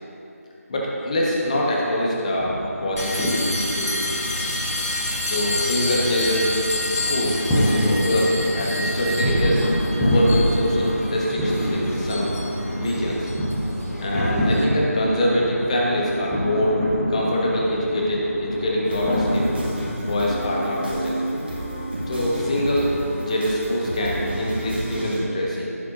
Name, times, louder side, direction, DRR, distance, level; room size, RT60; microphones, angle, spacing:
voice 1, 0.7-2.5 2.8-3.9 5.3-6.5 6.9-9.7 10.0-12.3 12.7-13.3 14.0-16.8 17.1-19.5 20.0-21.2 22.1-22.9 23.2-25.7, left 1 dB, 25° left, -3 dB, 1.2 m, -24 dB
sound 1, 2.3-19.7, equal, 5° left, 1.0 m, -27 dB
sound 2, 3.0-14.6, left 1 dB, 70° left, 2.0 m, -27 dB
sound 3, 18.8-25.2, right 1 dB, 40° right, 1.7 m, -30 dB
15.0 x 7.7 x 2.6 m, 2.8 s
figure-of-eight pair, 165°, 9 cm